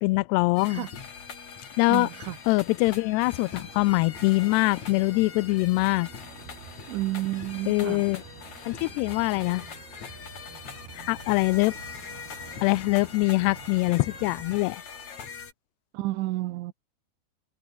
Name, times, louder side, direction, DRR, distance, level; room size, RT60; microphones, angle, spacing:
voice 1, 0.0-0.9 1.8-2.1 2.5-6.1 7.7-8.2 8.7-9.7 10.9-11.8 12.6-14.8, left 22 dB, 85° left, 2.4 m, -23 dB
sound 1, 0.6-15.5, left 6 dB, 40° left, 4.2 m, -42 dB
voice 2, 1.9-2.4 6.9-8.0 15.9-16.7, right 18 dB, 85° right, 3.4 m, -31 dB
sound 2, 3.2-14.5, right 11 dB, 65° right, 3.4 m, -49 dB
omnidirectional pair, 5.4 m